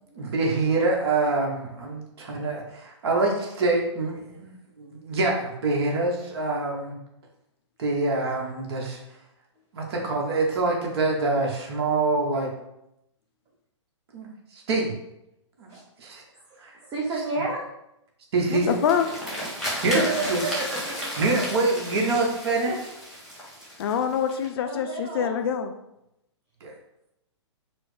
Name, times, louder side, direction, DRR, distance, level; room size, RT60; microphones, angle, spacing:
voice 1, 0.1-7.0 7.8-9.0 9.7-12.5 14.1-14.9 15.6-15.7 16.0-16.2 16.6-16.8 18.3-18.7 19.8-20.0 20.3-20.4 21.2-22.9 26.6-26.8, right 3 dB, 55° right, 0 dB, 1.0 m, -25 dB
voice 2, 16.7-17.6 19.7-21.2 24.7-25.3, right 3 dB, 25° right, -2 dB, 0.6 m, -31 dB
sound 1, 18.4-24.5, equal, ahead, 1.1 m, -34 dB
voice 3, 18.5-19.1 23.8-25.7, left 8 dB, 50° left, 7 dB, 0.5 m, -25 dB
4.5 x 2.1 x 3.2 m, 0.84 s
figure-of-eight pair, 120°, 16 cm